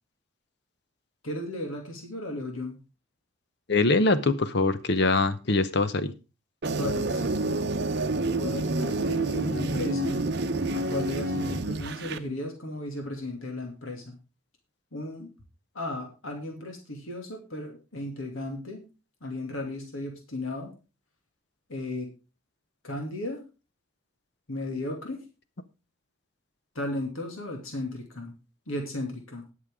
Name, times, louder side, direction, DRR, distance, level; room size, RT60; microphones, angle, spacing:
voice 1, 1.2-2.8 6.7-7.9 8.4-10.3 10.7-14.2 14.9-15.3 15.7-18.8 19.2-20.7 21.7-22.1 22.8-23.4 24.5-25.2 26.7-28.3 28.7-29.5, left 1 dB, 80° left, 3 dB, 2.5 m, -35 dB
voice 2, 3.7-6.1, left 3 dB, 55° left, 13 dB, 0.9 m, -23 dB
sound 1, 6.6-12.2, right 2 dB, 50° right, 0.8 m, -28 dB
19.5 x 6.5 x 3.6 m, 0.30 s
head